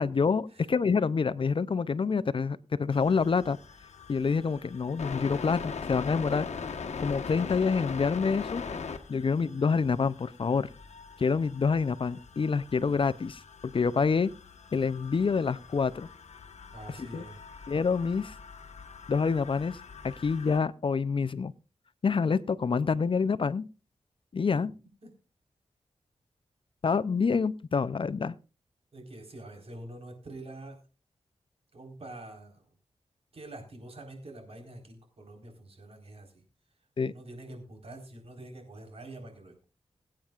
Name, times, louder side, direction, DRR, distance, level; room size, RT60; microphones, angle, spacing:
voice 1, 0.0-3.6 4.1-6.5 7.0-8.6 9.1-10.7 11.2-14.3 14.7-16.1 17.0-17.2 17.7-18.3 19.1-19.8 20.0-21.5 22.0-23.7 24.3-24.7 26.8-28.3 37.0-37.1, left 5 dB, 50° left, 16 dB, 0.5 m, -27 dB
sound 1, 2.9-20.6, left 5 dB, 85° left, 1.2 m, -42 dB
voice 2, 16.7-17.4 25.0-25.1 28.9-30.8 31.7-32.6 33.3-36.4 37.1-39.6, right 1 dB, 60° right, 2 dB, 4.2 m, -46 dB
22.5 x 8.9 x 2.4 m, 0.34 s
wide cardioid pair, 75°, 11 cm